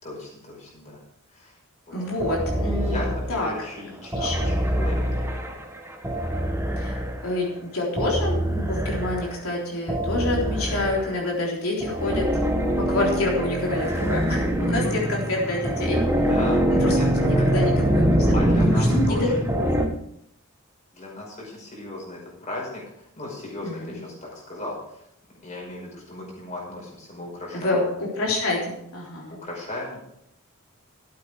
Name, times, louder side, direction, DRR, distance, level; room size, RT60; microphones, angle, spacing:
voice 1, 0.0-1.0 1.3-1.6 1.9-2.0 2.3-2.4 2.9-5.6 16.2-17.5 18.3-19.2 20.9-25.0 25.4-27.9 29.4-30.0, left 2 dB, 35° left, -2 dB, 5.2 m, -36 dB
voice 2, 1.9-3.5 4.1-4.4 6.8-12.3 12.8-16.3 16.7-18.3 18.5-20.0 23.6-24.0 27.5-29.4, left 2 dB, 70° left, -2 dB, 3.7 m, -28 dB
sound 1, 2.2-3.5 4.1-7.4 8.0-9.4 9.9-11.3 11.8-19.9, right 1 dB, 10° right, 1.2 m, -24 dB
12.5 x 8.6 x 4.8 m, 0.76 s
head